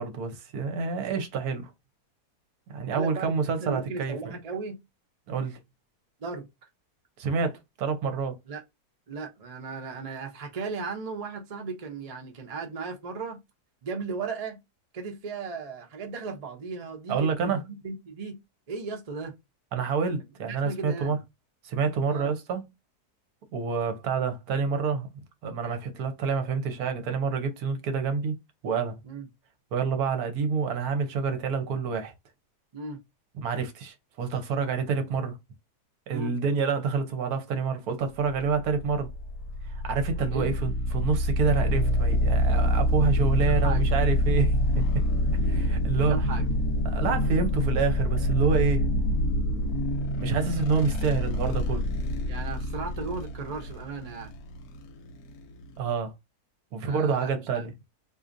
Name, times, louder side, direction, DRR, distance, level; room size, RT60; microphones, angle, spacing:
voice 1, 0.0-1.7 2.7-4.4 5.3-5.6 7.2-8.4 17.1-17.6 19.7-21.2 21.6-22.6 23.5-25.1 25.4-28.3 28.6-29.0 29.7-32.1 33.4-35.4 36.1-39.1 39.6-44.8 45.4-46.2 46.8-48.9 50.2-51.9 55.8-56.1 56.7-57.7, right 5 dB, 70° right, 1.2 m, -28 dB
voice 2, 2.9-4.8 6.2-6.5 8.5-8.6 9.1-13.4 13.8-14.6 14.9-18.4 18.7-19.3 20.5-21.2 22.1-22.3 29.0-29.3 32.7-33.0 36.1-36.3 40.1-40.5 43.4-43.9 45.9-46.5 52.3-54.3 56.8-57.7, right 4 dB, 45° right, 0.5 m, -36 dB
sound 1, 38.6-55.8, left 1 dB, 70° left, 1.1 m, -26 dB
3.9 x 2.7 x 2.5 m
omnidirectional pair, 1.7 m